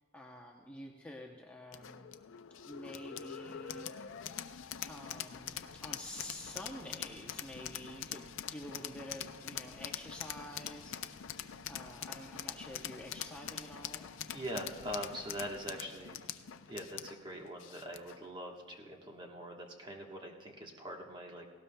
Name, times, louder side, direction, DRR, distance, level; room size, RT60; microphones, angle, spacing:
voice 1, 0.1-2.1 2.6-3.9 4.9-11.0 11.7-14.0, left 1 dB, 5° left, -1 dB, 0.7 m, -48 dB
sound 1, 1.7-18.3, left 9 dB, 70° left, 0.5 m, -44 dB
voice 2, 14.3-16.2 16.7-21.4, equal, 20° right, 0 dB, 1.2 m, -43 dB
18.0 x 17.0 x 2.2 m, 1.5 s
head